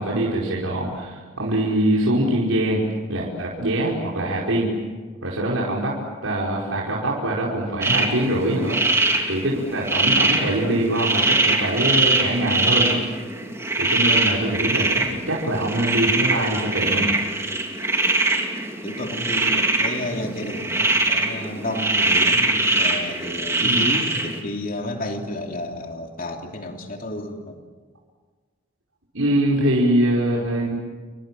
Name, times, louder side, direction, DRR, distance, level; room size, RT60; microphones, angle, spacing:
voice 1, 0.0-2.8 3.1-4.7 5.2-5.9 6.2-8.8 9.2-13.0 13.8-17.2 23.6-23.9 29.1-30.7, right 1 dB, 80° right, -5 dB, 5.3 m, -23 dB
sound 1, 7.8-24.4, right 2 dB, 15° right, 2.9 m, -22 dB
voice 2, 18.8-27.6, left 1 dB, 40° left, 2 dB, 3.1 m, -31 dB
29.5 x 26.0 x 7.7 m, 1.4 s
head